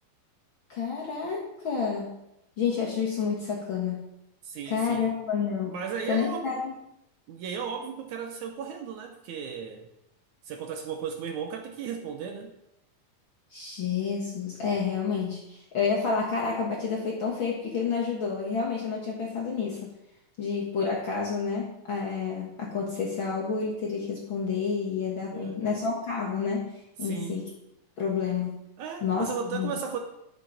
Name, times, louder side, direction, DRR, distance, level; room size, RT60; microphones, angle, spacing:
voice 1, 0.7-2.1 2.6-4.0 4.6-5.7 6.1-6.8 13.5-19.9 20.4-26.7 27.0-27.5 28.0-28.5 29.0-29.7, left 5 dB, 50° left, -3 dB, 1.6 m, -29 dB
voice 2, 4.4-5.1 5.7-6.6 7.3-9.9 10.5-12.5 25.3-25.7 27.0-27.5 28.8-30.0, right 6 dB, 70° right, 5 dB, 2.0 m, -35 dB
10.5 x 7.1 x 5.7 m, 0.83 s
omnidirectional pair, 4.0 m